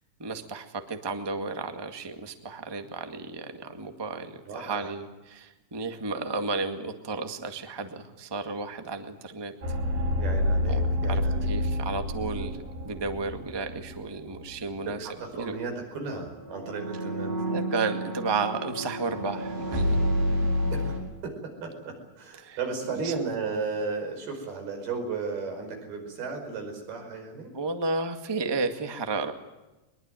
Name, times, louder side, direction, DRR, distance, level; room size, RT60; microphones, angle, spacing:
voice 1, 0.2-9.5 10.7-10.8 11.1-12.6 12.8-15.5 17.5-20.0 22.4-22.6 23.0-23.2 27.5-29.3, right 3 dB, 20° right, 7 dB, 0.7 m, -33 dB
voice 2, 4.5-4.9 10.2-11.5 14.8-17.3 20.7-21.0 21.2-27.5, right 4 dB, 85° right, 4 dB, 7.1 m, -34 dB
sound 1, 9.6-14.5 14.7-15.0 16.4-21.0, left 1 dB, 70° right, 6.8 m, -29 dB
23.0 x 22.0 x 9.2 m, 1.0 s
omnidirectional pair, 4.3 m